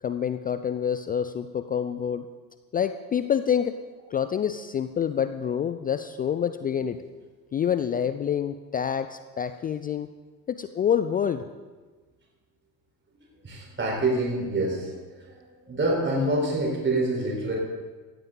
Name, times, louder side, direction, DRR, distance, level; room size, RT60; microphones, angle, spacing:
voice 1, 0.0-2.3 2.7-3.8 4.1-7.0 7.5-10.1 10.5-11.4, left 8 dB, 20° left, 10 dB, 0.4 m, -27 dB
voice 2, 13.4-14.9 15.2-15.3 15.7-17.6, right 2 dB, 25° right, -2 dB, 4.6 m, -26 dB
16.5 x 14.0 x 4.0 m, 1.3 s
hypercardioid pair, 70°, 49 cm